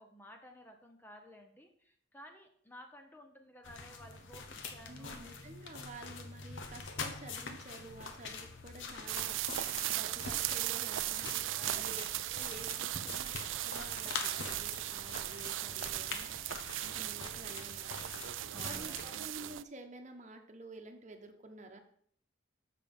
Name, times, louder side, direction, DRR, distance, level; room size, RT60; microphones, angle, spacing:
voice 1, 0.0-5.3 11.6-12.1 18.5-19.1, equal, 10° left, 4 dB, 0.6 m, -54 dB
sound 1, 3.6-19.2, left 4 dB, 70° left, 1.1 m, -45 dB
voice 2, 4.9-11.5 11.7-18.1 18.6-21.8, right 2 dB, 35° right, 5 dB, 1.0 m, -51 dB
sound 2, 9.1-19.6, right 14 dB, 75° right, 0.4 m, -37 dB
7.4 x 6.8 x 5.3 m, 0.62 s
head